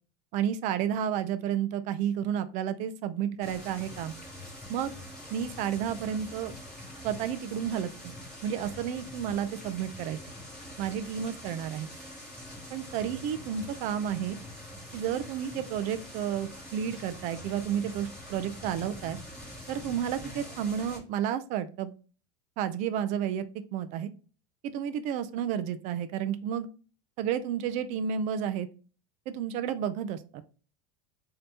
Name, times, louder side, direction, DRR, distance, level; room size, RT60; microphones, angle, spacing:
voice 1, 0.3-4.1 4.7-4.9 5.3-6.5 7.0-8.1 8.4-10.2 10.8-11.9 12.7-14.4 14.9-19.2 19.7-21.9 22.6-23.5 23.7-24.1 24.7-26.7 27.2-28.7 29.3-30.4, right 9 dB, 40° right, 12 dB, 0.4 m, -31 dB
sound 1, 3.4-21.0, left 1 dB, 5° left, 2.3 m, -44 dB
5.3 x 2.8 x 2.8 m, 0.36 s
supercardioid pair, 160°, 20 cm